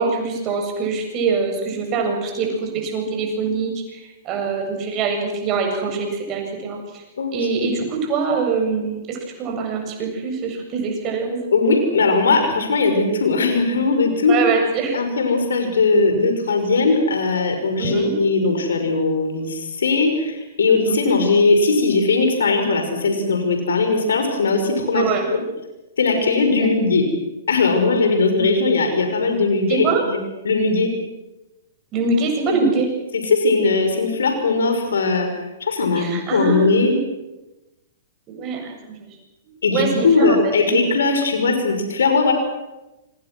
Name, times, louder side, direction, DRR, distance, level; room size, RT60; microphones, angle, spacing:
voice 1, 0.0-7.0 7.3-11.4 14.3-15.0 17.8-18.1 20.9-21.1 24.9-25.2 26.6-26.7 29.7-30.0 31.9-32.9 36.0-37.0 38.3-39.2 39.7-40.5, right 4 dB, 30° right, 2 dB, 7.8 m, -24 dB
voice 2, 11.5-14.3 14.9-25.4 26.0-27.1 27.5-30.2 30.4-30.9 32.5-32.6 33.1-35.3 35.6-36.9 39.6-42.3, left 3 dB, 70° left, 5 dB, 5.8 m, -19 dB
28.0 x 24.0 x 6.3 m, 1.0 s
figure-of-eight pair, 110°, 0 cm